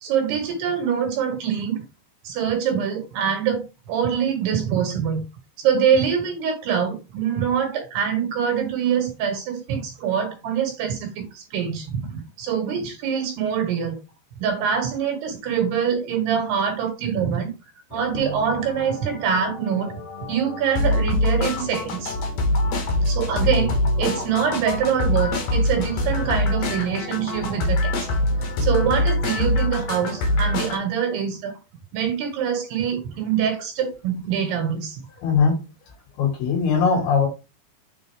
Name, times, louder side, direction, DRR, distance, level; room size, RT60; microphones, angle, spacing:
voice 1, 0.0-1.8 2.2-3.6 3.9-5.3 5.6-14.0 14.4-17.5 17.9-19.9 20.3-22.2 23.1-31.5 31.9-35.0, right 7 dB, 70° right, 4 dB, 3.3 m, -24 dB
sound 1, 17.9-30.8, left 1 dB, 85° left, 1.4 m, -24 dB
voice 2, 35.2-35.6 36.2-37.3, left 5 dB, 65° left, 0 dB, 3.8 m, -20 dB
7.2 x 4.0 x 3.4 m, 0.28 s
omnidirectional pair, 5.1 m